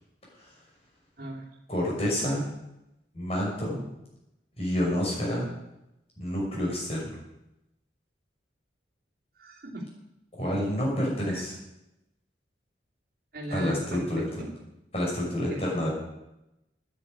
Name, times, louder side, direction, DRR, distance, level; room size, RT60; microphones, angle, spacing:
voice 1, 1.7-2.4 3.1-3.8 4.6-5.5 6.2-7.2 10.3-11.5 13.5-14.2 14.9-15.9, left 1 dB, 35° left, -4 dB, 5.9 m, -28 dB
voice 2, 9.3-9.9 11.3-11.4 13.3-14.5 15.5-15.9, right 1 dB, 50° right, -2 dB, 2.7 m, -37 dB
10.5 x 9.6 x 9.5 m, 0.90 s
head